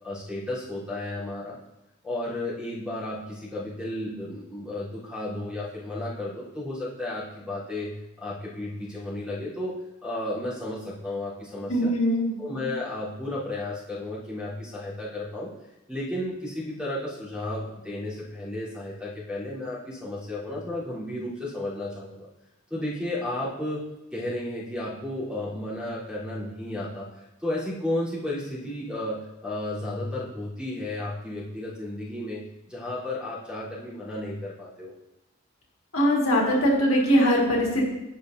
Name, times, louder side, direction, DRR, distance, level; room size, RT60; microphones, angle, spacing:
voice 1, 0.0-1.6 2.0-7.9 8.2-11.9 12.4-15.5 15.9-22.3 22.7-27.1 27.4-34.9, left 1 dB, 5° right, -10 dB, 3.3 m, -33 dB
voice 2, 11.7-12.4 35.9-37.8, equal, 75° left, -2 dB, 1.9 m, -21 dB
15.0 x 5.5 x 2.6 m, 0.95 s
head